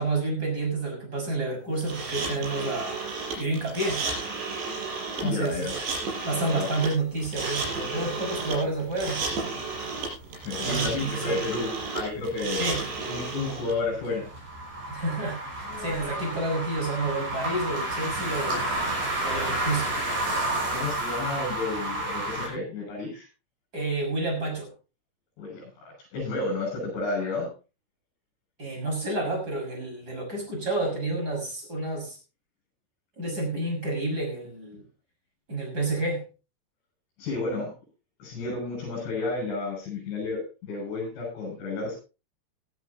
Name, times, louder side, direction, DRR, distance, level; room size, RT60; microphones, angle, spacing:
voice 1, 0.0-3.1 3.4-4.0 5.2-5.7 6.2-9.2 10.6-11.5 12.6-12.8 14.9-18.9 19.2-20.0 23.7-24.7 28.6-32.2 33.2-34.8 35.5-36.2, right 2 dB, 20° right, 2 dB, 6.3 m, -29 dB
sound 1, 1.8-13.7, right 4 dB, 65° right, 8.0 m, -33 dB
voice 2, 5.2-5.7 6.3-6.7 10.4-12.6 13.1-14.3 20.7-23.3 25.4-27.5 37.2-37.7 38.2-42.0, left 3 dB, 65° left, -4 dB, 9.6 m, -31 dB
sound 2, 7.7-22.5, right 1 dB, 45° right, 7.9 m, -32 dB
20.0 x 12.5 x 2.9 m, 0.32 s
omnidirectional pair, 5.4 m